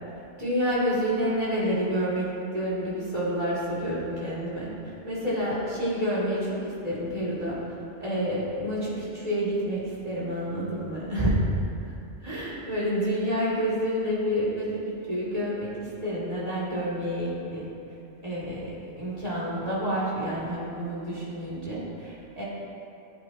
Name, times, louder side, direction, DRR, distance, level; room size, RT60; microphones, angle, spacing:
voice 1, 0.4-2.3 2.5-7.7 8.0-11.4 12.2-14.8 15.1-17.7 18.2-22.4, equal, 30° right, -8 dB, 2.8 m, -29 dB
15.0 x 7.7 x 2.9 m, 2.8 s
omnidirectional pair, 1.3 m